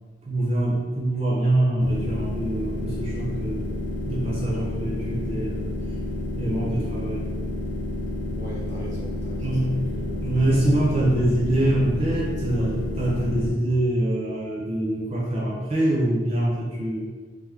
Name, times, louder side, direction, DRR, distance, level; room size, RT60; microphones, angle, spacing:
voice 1, 0.2-3.7 4.0-5.7 6.4-7.3 9.4-9.7 10.2-17.0, right 1 dB, 35° right, -5 dB, 0.6 m, -24 dB
sound 1, 1.8-13.5, left 1 dB, 75° left, 0.6 m, -30 dB
voice 2, 8.3-11.7 12.6-12.7, right 1 dB, 70° right, -7 dB, 1.3 m, -40 dB
3.3 x 3.2 x 3.4 m, 1.4 s
head